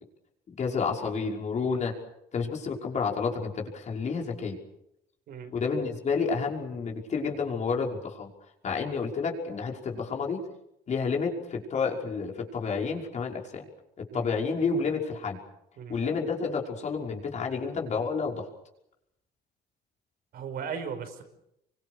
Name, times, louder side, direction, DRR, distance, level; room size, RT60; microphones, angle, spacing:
voice 1, 0.5-1.9 2.3-4.6 5.5-8.3 8.6-10.4 10.9-13.6 14.0-15.4 15.9-18.5, left 5 dB, 45° left, 0 dB, 5.7 m, -30 dB
voice 2, 20.3-21.2, right 6 dB, 65° right, 7 dB, 5.6 m, -37 dB
27.0 x 24.5 x 6.6 m, 0.81 s
cardioid pair, 110°, 17 cm